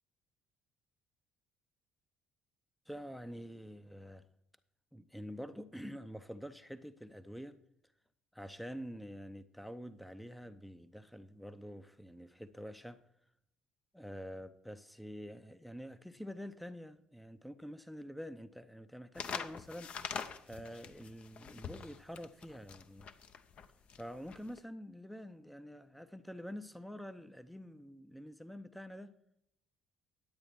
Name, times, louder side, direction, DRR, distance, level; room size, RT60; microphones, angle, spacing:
voice 1, 2.9-4.3 4.9-7.6 8.3-13.0 13.9-23.1 24.0-29.1, equal, ahead, 0.6 m, -47 dB
sound 1, 19.1-24.6, left 6 dB, 45° left, 0.7 m, -44 dB
10.5 x 8.5 x 4.6 m
figure-of-eight pair, 55°, 3 cm